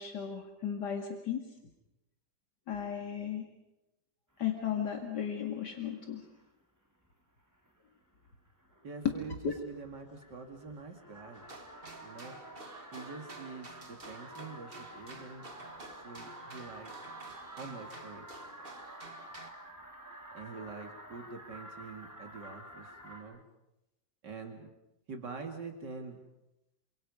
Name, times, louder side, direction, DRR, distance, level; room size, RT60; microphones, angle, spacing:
voice 1, 0.0-1.4 2.7-3.5 4.4-6.3 9.0-9.1 9.4-9.5, left 8 dB, 80° left, 3 dB, 2.7 m, -34 dB
sound 1, 4.4-5.4 5.7-6.5 7.0-7.1 7.5-7.8 8.1-23.2, right 1 dB, 10° right, 3.7 m, -51 dB
voice 2, 8.8-11.5 12.0-12.4 12.9-15.4 15.9-16.9 17.5-18.3 20.3-23.4 24.2-24.7 25.1-26.2, right 4 dB, 85° right, 3 dB, 3.0 m, -45 dB
sound 2, 11.3-19.5, right 3 dB, 35° right, 2.1 m, -50 dB
28.0 x 26.0 x 5.5 m, 0.93 s
omnidirectional pair, 1.8 m